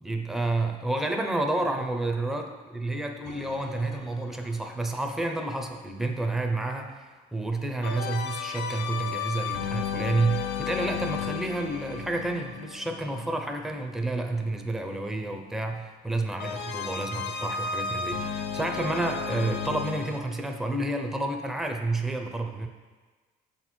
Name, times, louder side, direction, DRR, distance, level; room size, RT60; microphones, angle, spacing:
voice 1, 0.0-22.7, right 2 dB, ahead, 3 dB, 0.6 m, -30 dB
sound 1, 3.2-5.2 7.8-13.8 16.4-20.2, left 6 dB, 90° left, 0.6 m, -34 dB
6.7 x 4.4 x 4.4 m, 1.4 s
cardioid pair, 110°, 17 cm